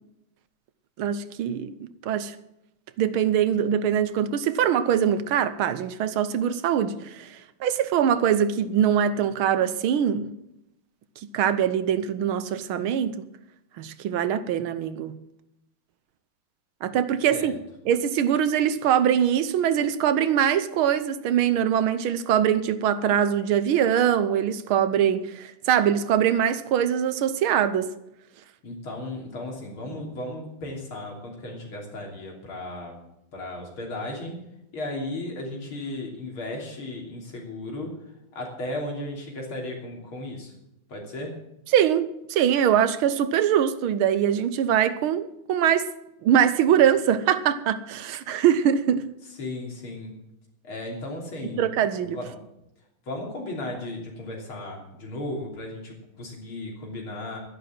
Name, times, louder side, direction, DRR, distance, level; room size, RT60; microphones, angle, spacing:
voice 1, 1.0-2.4 3.0-10.3 11.3-13.3 13.8-15.2 16.8-17.5 17.9-27.9 41.7-45.9 46.2-49.0 51.6-52.2, right 9 dB, 75° right, 1.7 m, -23 dB
voice 2, 28.6-33.0 33.3-34.4 34.7-38.0 38.3-40.5 40.9-41.4 49.4-50.2 50.6-51.7 52.0-52.4 53.1-57.4, left 1 dB, 75° left, 4.0 m, -35 dB
11.5 x 11.0 x 7.6 m
omnidirectional pair, 2.3 m